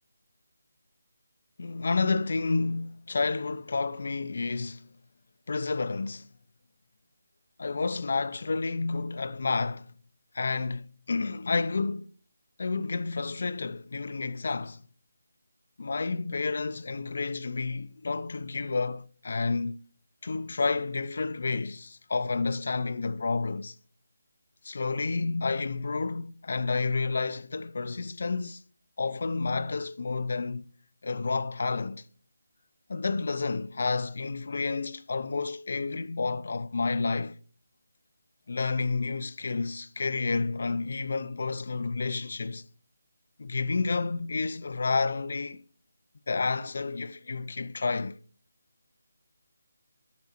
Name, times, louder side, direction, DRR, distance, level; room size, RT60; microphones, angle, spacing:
voice 1, 1.6-4.9 5.5-6.3 7.6-9.9 10.3-12.1 12.6-14.8 15.8-19.8 20.2-23.8 24.6-28.6 29.0-30.6 31.0-32.1 32.9-37.4 38.5-42.7 43.4-45.6 46.3-48.2, left 4 dB, 50° left, 0.5 m, -30 dB
8.2 x 6.2 x 4.3 m
figure-of-eight pair, 175°, 0 cm